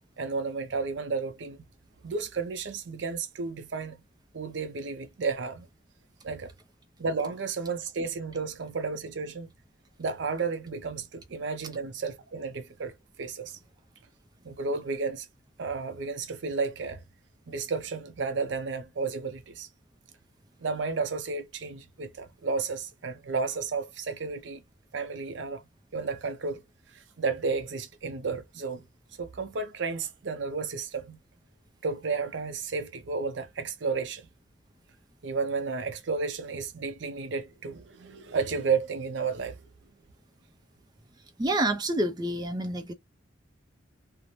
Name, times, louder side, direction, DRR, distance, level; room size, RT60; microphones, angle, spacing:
voice 1, 0.2-1.6 2.0-4.0 4.3-5.7 6.2-6.5 7.0-9.5 10.0-13.6 14.4-15.3 15.6-17.0 17.5-19.7 20.6-24.6 24.9-25.6 25.9-26.6 26.9-28.9 29.2-31.2 31.8-34.3 35.2-39.7, right 4 dB, 75° right, 0.5 m, -32 dB
voice 2, 41.4-42.9, right 1 dB, 20° right, 0.4 m, -28 dB
2.5 x 2.0 x 3.0 m
head